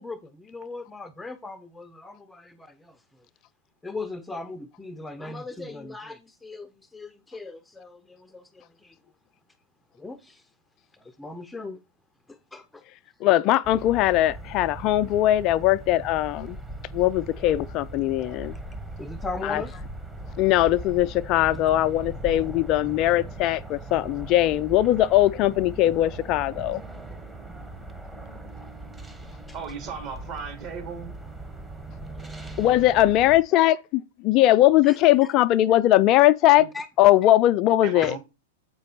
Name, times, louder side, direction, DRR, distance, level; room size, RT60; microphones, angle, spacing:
voice 1, 0.0-3.0 3.8-8.9 10.0-10.4 11.2-11.8 12.3-12.6 19.0-19.8 34.8-35.0 36.7-36.9 38.0-38.1, left 3 dB, 5° left, 0.7 m, -38 dB
voice 2, 13.2-16.6 16.9-18.5 19.4-19.6 20.4-26.8 32.6-36.7 37.0-38.2, left 14 dB, 40° left, 0.4 m, -20 dB
sound 1, 13.6-33.4, right 2 dB, 10° right, 1.2 m, -39 dB
voice 3, 29.5-31.1 36.6-36.7 37.8-38.2, right 6 dB, 45° right, 3.2 m, -36 dB
8.0 x 5.2 x 4.0 m
hypercardioid pair, 105°, 0 cm